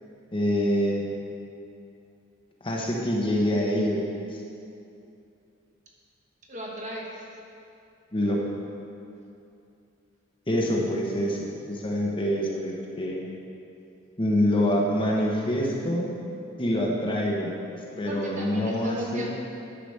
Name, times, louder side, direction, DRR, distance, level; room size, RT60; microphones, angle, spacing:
voice 1, 0.3-1.0 2.6-4.4 8.1-8.4 10.5-13.3 14.2-16.1 16.6-17.5 18.0-19.3, equal, 25° left, -2 dB, 1.0 m, -26 dB
voice 2, 6.5-7.2 18.1-19.3, equal, 35° right, -3 dB, 1.4 m, -35 dB
10.5 x 4.9 x 6.5 m, 2.6 s
head